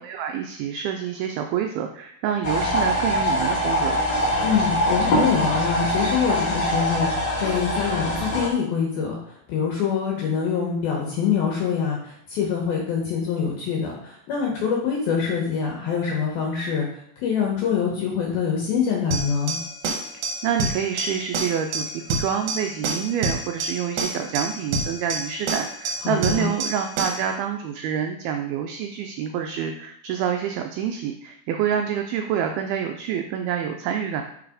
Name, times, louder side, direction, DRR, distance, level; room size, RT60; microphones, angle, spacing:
voice 1, 0.0-4.0 20.4-34.2, right 8 dB, 85° right, 5 dB, 2.2 m, -27 dB
sound 1, 2.4-8.5, equal, 40° left, 1.6 m, -23 dB
voice 2, 4.4-19.6 26.0-26.5, left 7 dB, 75° left, -2 dB, 2.5 m, -25 dB
sound 2, 19.1-27.3, right 3 dB, 70° right, 1.9 m, -28 dB
6.9 x 4.0 x 4.9 m, 0.70 s
omnidirectional pair, 4.9 m